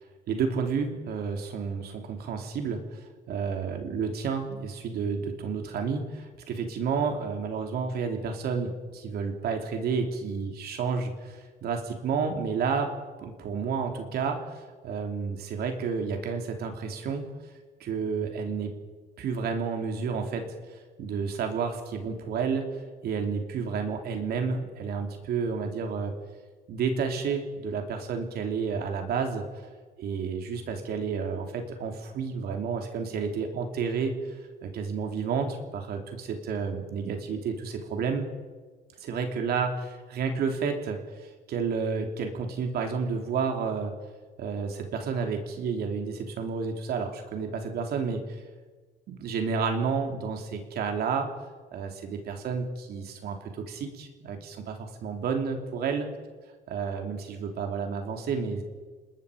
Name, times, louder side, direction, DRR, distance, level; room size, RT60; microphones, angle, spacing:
voice 1, 0.3-3.0 3.3-12.9 13.2-17.2 17.8-18.7 19.2-20.4 21.0-22.8 23.0-26.1 26.7-29.4 30.0-34.2 34.6-38.2 39.0-39.7 40.1-43.9 44.4-48.2 49.1-51.3 51.7-56.1 56.7-58.6, right 5 dB, 65° right, 4 dB, 3.2 m, -30 dB
29.0 x 20.0 x 5.2 m, 1.4 s
cardioid pair, 110°, 17 cm